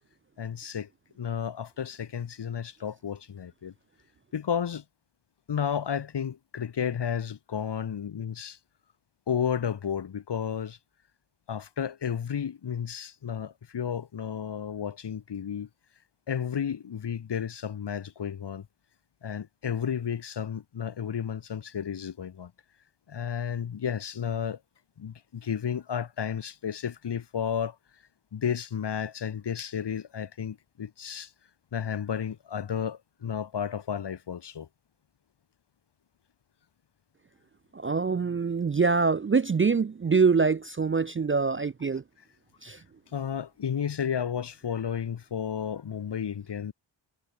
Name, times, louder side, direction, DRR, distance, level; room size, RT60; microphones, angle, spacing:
voice 1, 0.4-0.9 1.2-3.7 4.3-4.8 5.5-8.6 9.3-10.8 11.5-15.7 16.3-18.7 19.2-22.5 23.1-24.6 25.0-27.8 28.3-31.3 31.7-34.7 43.1-46.7, left 8 dB, 60° left, 0.9 m, -32 dB
voice 2, 37.7-42.0 42.6-42.8, right 5 dB, 30° right, 0.4 m, -24 dB
wide cardioid pair, 105°, 47 cm